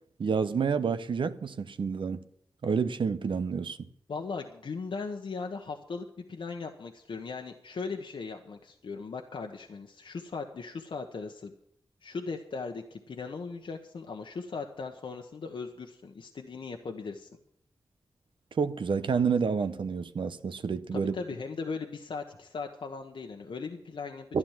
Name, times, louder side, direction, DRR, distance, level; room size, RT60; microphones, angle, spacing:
voice 1, 0.2-2.2 2.6-3.9 18.6-21.1 24.3-24.4, right 5 dB, 70° right, 0.9 m, -29 dB
voice 2, 4.1-11.5 12.0-17.3 20.9-24.4, left 4 dB, 75° left, 1.2 m, -38 dB
12.5 x 9.8 x 7.4 m
cardioid pair, 45°, 9 cm